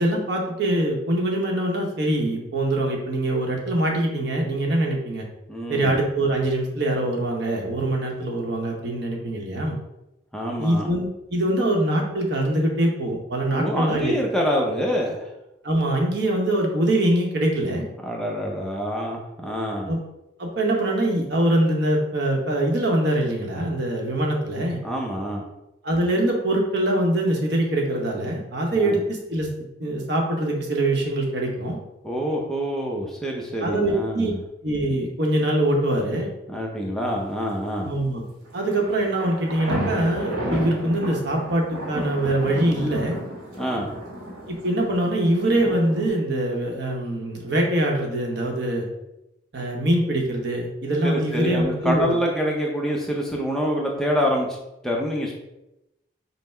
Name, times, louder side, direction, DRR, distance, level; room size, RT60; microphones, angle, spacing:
voice 1, 0.0-5.2 5.7-9.7 10.6-14.1 15.6-17.8 19.9-20.0 20.4-24.8 25.8-29.5 29.8-31.8 33.6-34.3 34.6-36.3 37.8-38.2 38.5-43.1 44.5-48.9 49.5-52.2, right 1 dB, 60° right, 0 dB, 0.9 m, -23 dB
voice 2, 5.5-5.9 10.3-10.9 13.5-15.3 18.0-19.9 24.8-25.4 28.7-29.0 32.0-34.4 36.5-37.9 43.6-43.9 51.0-54.5 54.8-55.3, equal, ahead, -2 dB, 0.5 m, -26 dB
sound 1, 38.5-46.1, equal, 85° right, 1.1 m, -32 dB
5.5 x 2.1 x 4.3 m, 0.89 s
head